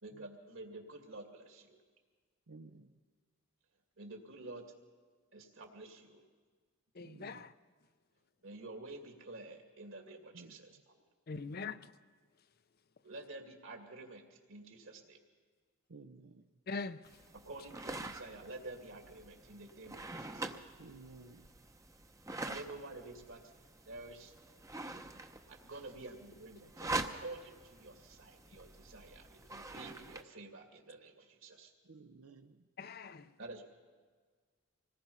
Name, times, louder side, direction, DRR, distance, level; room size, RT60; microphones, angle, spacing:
voice 1, 0.0-1.8 4.0-4.7 5.3-6.2 8.4-10.7 13.0-15.2 17.3-20.4 22.5-23.4 23.9-24.3 25.5-31.7 33.4-33.6, right 2 dB, 65° right, 2.5 m, -49 dB
voice 2, 2.5-2.9 7.0-7.5 10.3-10.6 11.3-11.9 15.9-16.5 20.8-21.5 25.7-25.9 31.8-32.7, right 3 dB, 80° right, 0.8 m, -55 dB
voice 3, 6.9-7.5 11.3-11.9 16.7-17.2 32.8-33.3, left 4 dB, 45° left, 0.5 m, -42 dB
sound 1, 17.1-30.2, right 2 dB, 15° right, 0.7 m, -45 dB
25.5 x 18.5 x 5.6 m
head